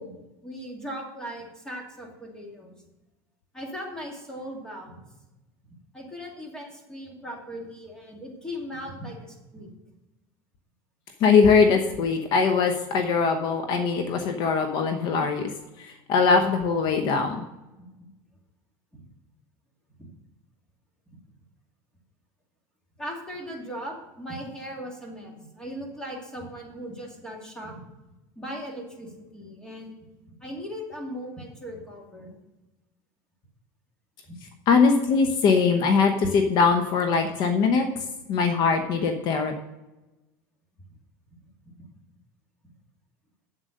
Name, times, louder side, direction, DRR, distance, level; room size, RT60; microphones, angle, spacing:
voice 1, 0.0-2.8 3.5-5.0 5.9-9.7 18.0-18.1 18.9-19.0 20.0-20.1 23.0-27.8 28.4-29.9 30.3-32.3 34.3-34.4 41.6-41.7, equal, 10° left, -1 dB, 2.4 m, -38 dB
voice 2, 11.2-15.5 15.8-17.4 34.7-37.9 38.3-39.5, left 5 dB, 50° left, 5 dB, 1.0 m, -21 dB
7.9 x 7.8 x 6.4 m, 1.0 s
supercardioid pair, 145°, 9 cm